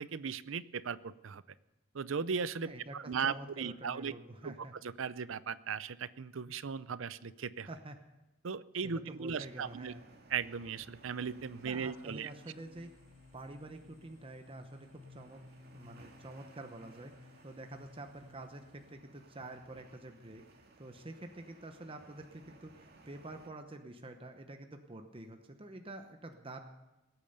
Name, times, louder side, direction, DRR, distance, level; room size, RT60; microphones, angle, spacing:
voice 1, 0.0-1.4 1.9-4.1 4.4-4.5 4.8-7.7 8.4-9.9 10.3-12.3, right 6 dB, 65° right, 17 dB, 0.6 m, -37 dB
voice 2, 2.6-4.7 7.7-8.0 8.8-10.0 11.6-12.9 13.3-15.4 15.7-20.4 20.8-26.6, right 2 dB, 25° right, 5 dB, 0.9 m, -48 dB
sound 1, 9.3-23.5, right 2 dB, 50° right, 2.1 m, -61 dB
sound 2, 10.5-19.0, left 3 dB, 70° left, 1.6 m, -59 dB
19.5 x 8.7 x 6.7 m, 1.0 s
head